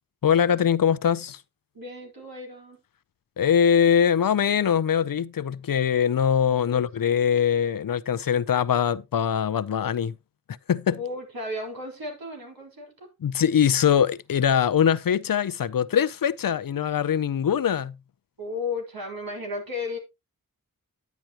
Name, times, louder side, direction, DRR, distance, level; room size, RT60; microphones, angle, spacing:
voice 1, 0.2-1.4 3.4-10.1 10.7-11.0 13.2-18.0, left 8 dB, 70° left, 0.6 m, -22 dB
voice 2, 1.7-2.8 6.7-6.8 10.9-13.1 18.4-20.0, left 3 dB, 75° right, 4.2 m, -34 dB
10.5 x 9.3 x 2.9 m
wide cardioid pair, 100°, 35 cm